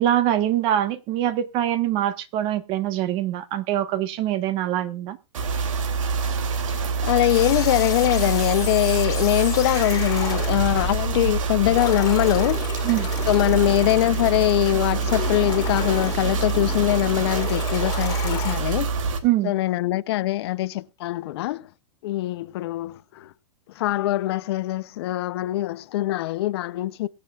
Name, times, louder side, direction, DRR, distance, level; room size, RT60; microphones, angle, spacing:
voice 1, 0.0-5.2 12.8-13.1 19.2-19.5, right 12 dB, 30° right, 1.2 m, -23 dB
sound 1, 5.3-19.2, right 5 dB, 85° right, 2.9 m, -26 dB
voice 2, 6.7-12.6 13.3-18.9 19.4-21.7 22.0-23.3 23.8-27.1, left 15 dB, 55° left, 0.6 m, -23 dB
sound 2, 7.3-18.5, left 8 dB, 20° left, 2.1 m, -33 dB
23.0 x 7.7 x 2.4 m
supercardioid pair, 160°, 16 cm